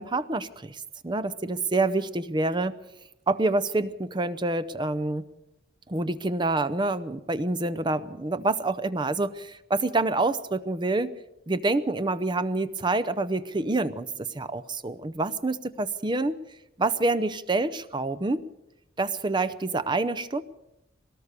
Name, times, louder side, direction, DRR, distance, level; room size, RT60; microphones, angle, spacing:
voice 1, 0.0-2.8 3.3-5.3 5.9-11.1 11.5-14.1 14.3-16.4 16.8-18.4 19.0-20.4, right 2 dB, 25° right, 12 dB, 0.6 m, -27 dB
22.0 x 18.5 x 6.7 m, 0.90 s
head